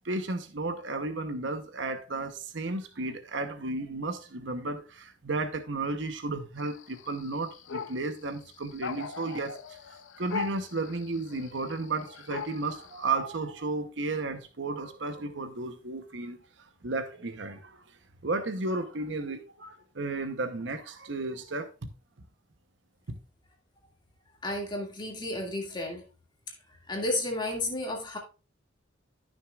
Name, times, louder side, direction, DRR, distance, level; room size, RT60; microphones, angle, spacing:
voice 1, 0.0-9.8 10.2-17.8 18.2-21.7 23.1-23.2, right 3 dB, 70° right, 0.9 m, -33 dB
sound 1, 6.6-13.1, left 6 dB, 85° left, 0.7 m, -40 dB
voice 2, 24.4-26.0 26.9-28.2, left 1 dB, 25° left, 2.2 m, -32 dB
13.5 x 6.5 x 2.4 m
head